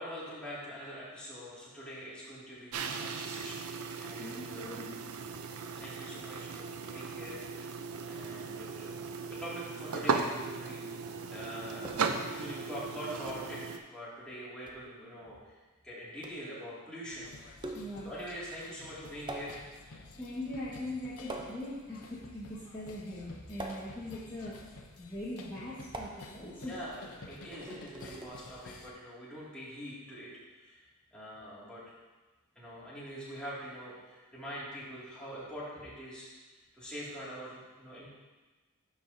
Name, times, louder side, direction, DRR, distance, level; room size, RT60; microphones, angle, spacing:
voice 1, 0.0-3.6 4.0-4.8 5.8-7.6 8.0-8.9 9.3-15.6 15.8-17.3 18.0-19.6 26.6-30.8 31.1-31.8 32.6-36.3 36.7-38.1, equal, 5° left, -9 dB, 2.3 m, -44 dB
sound 1, 2.7-13.8, right 5 dB, 85° right, 0.5 m, -37 dB
voice 2, 4.2-5.0 17.7-18.1 20.1-24.6 25.0-26.8, left 1 dB, 20° left, -11 dB, 1.4 m, -41 dB
sound 2, 11.8-12.3 13.3-13.6 14.7-14.9 16.2-16.5 17.6-18.1 19.3-19.9 21.3-21.9 23.6-24.2 25.9-26.5 27.5-28.3, right 2 dB, 20° right, 0.5 m, -44 dB
sound 3, 17.1-28.9, left 3 dB, 75° left, 0.7 m, -52 dB
12.0 x 4.9 x 2.7 m, 1.2 s
head